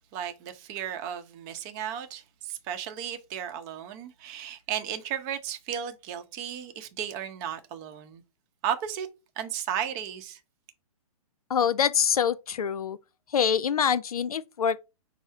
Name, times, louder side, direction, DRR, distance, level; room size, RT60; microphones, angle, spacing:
voice 1, 0.1-8.2 8.6-9.1 9.4-10.4, right 9 dB, 30° right, 0.7 m, -34 dB
voice 2, 11.5-13.0 13.3-14.8, left 7 dB, 75° left, 0.5 m, -25 dB
5.4 x 2.0 x 4.6 m
figure-of-eight pair, 125°, 19 cm